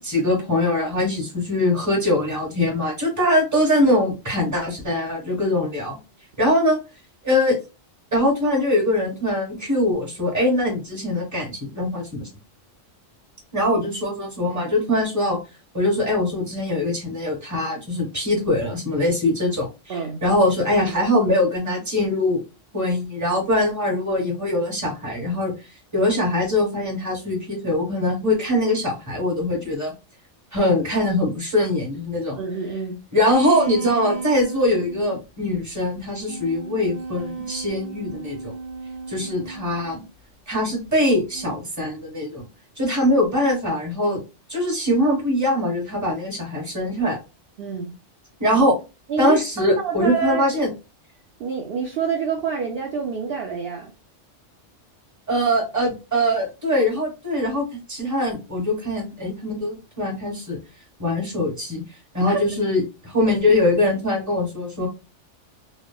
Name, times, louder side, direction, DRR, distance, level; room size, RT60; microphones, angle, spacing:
voice 1, 0.0-6.0 6.4-6.8 7.2-7.6 8.1-12.3 13.5-15.4 15.7-22.4 22.7-25.5 25.9-29.9 30.5-32.4 33.1-38.5 39.1-40.0 40.5-42.5 42.8-44.2 44.5-47.2 48.4-48.7 49.2-50.7 55.3-60.6 61.0-61.8 62.1-64.9, left 1 dB, 15° right, 1.2 m, -22 dB
voice 2, 19.9-20.2 32.3-33.0 47.6-47.9 49.1-50.6 51.4-53.9 62.3-62.4, right 5 dB, 60° right, 0.8 m, -27 dB
sound 1, 33.3-35.2 36.0-40.1 41.3-41.6, right 4 dB, 80° right, 1.0 m, -34 dB
3.2 x 2.1 x 2.2 m
omnidirectional pair, 1.3 m